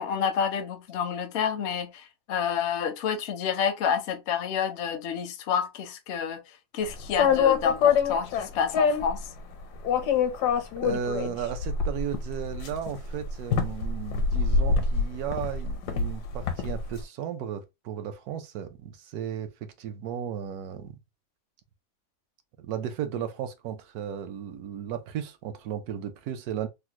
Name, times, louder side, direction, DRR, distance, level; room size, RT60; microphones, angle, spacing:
voice 1, 0.0-6.4 6.7-9.3, left 7 dB, 65° left, 0.7 m, -29 dB
sound 1, 7.0-9.2 9.8-16.9, left 6 dB, 85° left, 1.2 m, -25 dB
voice 2, 10.8-21.0 22.6-26.7, right 9 dB, 75° right, 1.0 m, -35 dB
3.5 x 2.1 x 2.8 m
omnidirectional pair, 1.7 m